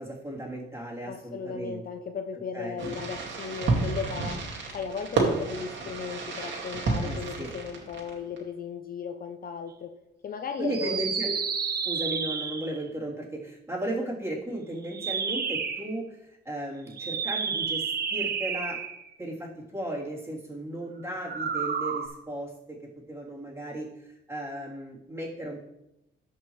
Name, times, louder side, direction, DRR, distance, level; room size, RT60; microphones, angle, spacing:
voice 1, 0.0-1.8 2.5-2.8 7.0-7.5 10.6-11.4 11.8-18.8 19.2-22.8 23.1-25.6, right 1 dB, 15° right, -5 dB, 3.4 m, -35 dB
voice 2, 1.0-4.4 4.7-9.9 10.2-11.0, left 6 dB, 50° left, 7 dB, 0.7 m, -36 dB
Fireworks, 2.8-8.4, right 3 dB, 65° right, 2.4 m, -30 dB
sound 1, 10.7-12.8 14.8-15.9 16.9-19.1 21.2-22.1, right 6 dB, 50° right, 1.1 m, -30 dB
14.0 x 5.6 x 3.2 m, 0.89 s
cardioid pair, 90°, 20 cm